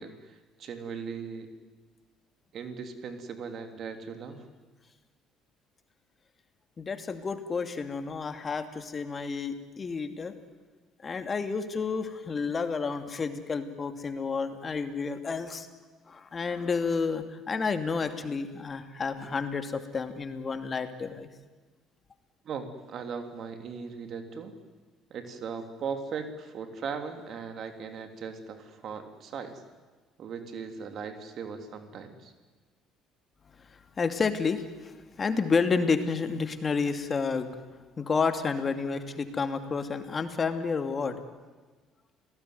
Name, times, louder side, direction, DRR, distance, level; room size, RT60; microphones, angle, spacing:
voice 1, 0.0-1.5 2.5-4.4 22.4-24.5 25.1-29.6 30.2-32.3, right 6 dB, 55° right, 7 dB, 3.2 m, -38 dB
voice 2, 6.8-10.3 11.0-15.7 16.1-21.3 33.7-37.5 38.0-41.2, left 5 dB, 35° left, 8 dB, 2.6 m, -30 dB
29.5 x 18.0 x 9.6 m, 1.3 s
hypercardioid pair, 60°, 0 cm